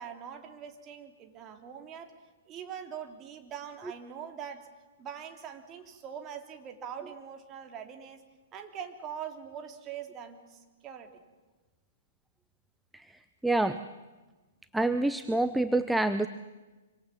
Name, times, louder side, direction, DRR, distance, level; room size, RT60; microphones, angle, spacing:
voice 1, 0.0-2.1 2.5-4.7 5.0-8.2 8.5-11.1, right 8 dB, 25° right, 4 dB, 2.9 m, -43 dB
voice 2, 13.4-13.8 14.7-16.3, right 2 dB, 5° right, 10 dB, 0.7 m, -27 dB
26.0 x 25.0 x 7.4 m, 1.2 s
figure-of-eight pair, 110°, 0 cm